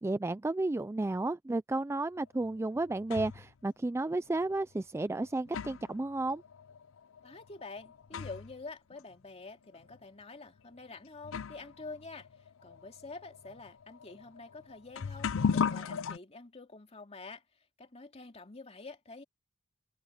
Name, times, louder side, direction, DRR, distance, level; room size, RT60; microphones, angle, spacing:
voice 1, 0.0-6.4, right 2 dB, 10° right, 0.3 m, -32 dB
sound 1, 2.4-3.5 4.4-4.5 5.2-8.6 8.9-9.0 9.8-10.0 10.8-10.9 11.2-16.2, left 6 dB, 65° left, 0.5 m, -37 dB
voice 2, 7.2-17.4 17.8-19.2, left 3 dB, 30° left, 2.7 m, -47 dB
head